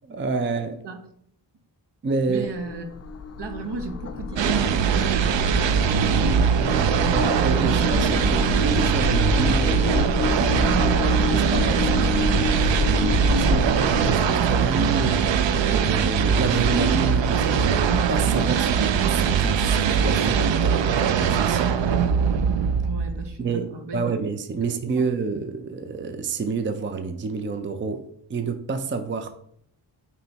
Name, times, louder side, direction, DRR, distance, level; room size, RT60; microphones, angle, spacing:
voice 1, 0.0-0.8 2.0-2.5 7.1-12.3 12.6-17.8 18.1-18.7 19.1-21.8 23.4-29.4, right 4 dB, 30° right, 0.5 m, -29 dB
sound 1, 2.3-14.2, left 5 dB, 35° left, 0.4 m, -29 dB
voice 2, 2.3-2.8 3.4-5.9 13.0-13.3 22.8-24.1, right 3 dB, 65° right, 1.0 m, -35 dB
sound 2, 4.4-23.4, right 7 dB, 85° right, 0.6 m, -21 dB
sound 3, 9.0-18.6, equal, 10° right, 2.7 m, -34 dB
8.9 x 3.1 x 4.0 m
wide cardioid pair, 120°, 43 cm